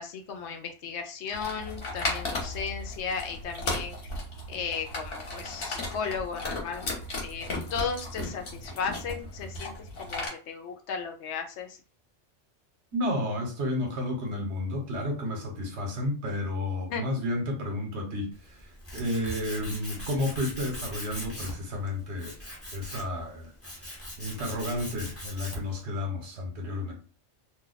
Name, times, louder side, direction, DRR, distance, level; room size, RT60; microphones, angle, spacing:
voice 1, 0.0-4.0 4.5-6.9 7.2-9.7 10.0-11.8 16.9-17.0, left 6 dB, 70° left, 0.8 m, -35 dB
sound 1, 1.3-10.3, left 2 dB, 55° left, 1.1 m, -35 dB
voice 2, 12.9-22.3 22.7-26.9, left 1 dB, 70° right, 1.2 m, -32 dB
Tools, 18.3-25.8, equal, 15° left, 0.7 m, -41 dB
2.6 x 2.2 x 3.9 m
omnidirectional pair, 1.2 m